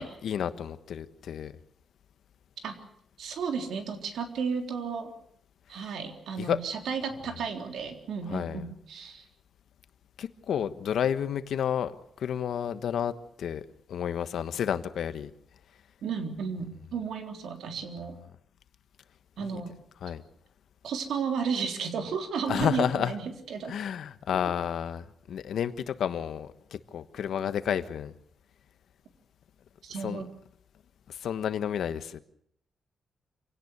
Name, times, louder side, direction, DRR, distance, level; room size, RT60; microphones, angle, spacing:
voice 1, 0.0-1.5 5.7-5.9 6.4-6.6 7.2-7.4 8.3-8.7 10.2-13.6 13.9-15.3 16.9-17.0 19.4-19.6 20.0-20.2 22.5-23.2 23.6-28.1 29.9-30.3 31.1-32.2, left 8 dB, 70° left, 12 dB, 1.3 m, -31 dB
voice 2, 3.2-5.1 5.7-9.2 16.0-18.2 19.4-19.7 20.8-23.7 24.3-24.4 29.8-30.3, right 6 dB, 80° right, 5 dB, 3.7 m, -33 dB
26.5 x 17.5 x 8.3 m, 0.69 s
wide cardioid pair, 175°, 0 cm